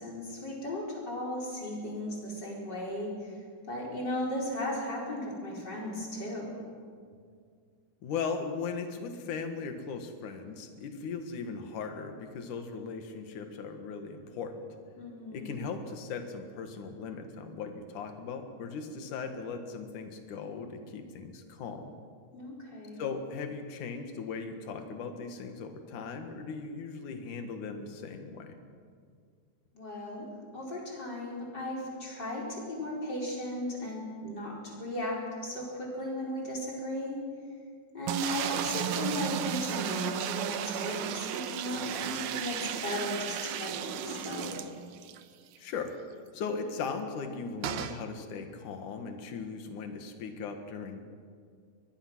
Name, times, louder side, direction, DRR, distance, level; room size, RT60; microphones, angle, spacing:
voice 1, 0.0-3.3 3.7-6.6 15.0-15.6 22.3-23.1 29.7-30.3 30.5-37.2 37.9-44.6, left 1 dB, 25° left, -3 dB, 4.9 m, -36 dB
voice 2, 8.0-14.7 15.3-21.9 23.0-28.6 45.6-46.0 46.3-51.0, left 5 dB, 55° left, 6 dB, 2.8 m, -38 dB
sound 1, 38.1-45.2 45.6-45.7 45.9-46.0 47.6-48.0, right 10 dB, 90° right, 1.7 m, -34 dB
23.5 x 20.0 x 6.1 m, 2.1 s
omnidirectional pair, 4.8 m